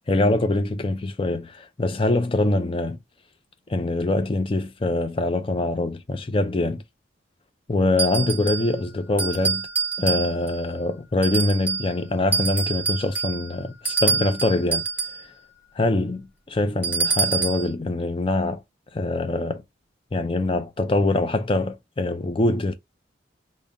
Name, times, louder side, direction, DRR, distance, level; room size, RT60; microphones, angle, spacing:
voice 1, 0.1-3.0 3.7-6.8 7.7-9.7 10.0-14.8 15.8-18.6 18.9-19.6 20.1-22.7, left 2 dB, 25° left, 0.4 m, -24 dB
sound 1, 8.0-8.7 9.2-10.6 11.2-11.9 12.3-15.3 16.8-17.7, right 5 dB, 10° right, 0.7 m, -26 dB
3.6 x 2.1 x 3.8 m
head